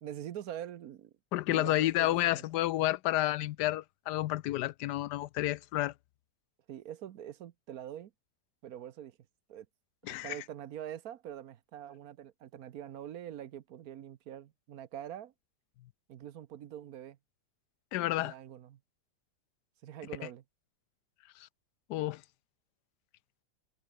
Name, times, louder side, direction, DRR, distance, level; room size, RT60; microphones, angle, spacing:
voice 1, 0.0-1.1 1.5-2.4 6.7-8.1 8.6-9.2 9.5-9.7 10.2-15.3 16.1-17.2 18.2-18.8 19.8-20.4, right 10 dB, 70° right, 1.3 m, -44 dB
voice 2, 1.3-5.9 10.0-10.4 17.9-18.3 21.4-21.5 21.9-22.2, left 15 dB, 85° left, 1.2 m, -30 dB
omnidirectional pair, 1.7 m